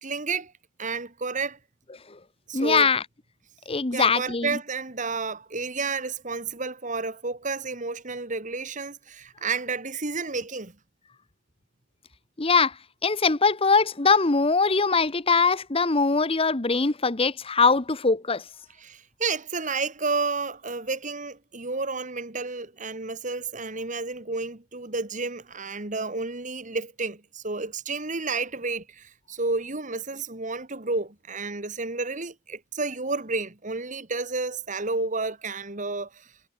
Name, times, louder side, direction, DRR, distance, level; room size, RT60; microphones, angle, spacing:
voice 1, 0.0-0.5 0.8-1.6 2.5-2.9 3.9-10.7 18.8-36.3, right 3 dB, 40° right, 2.2 m, -31 dB
voice 2, 2.5-3.0 3.7-4.6 12.4-12.7 13.0-18.4, left 4 dB, 30° left, 1.0 m, -22 dB
head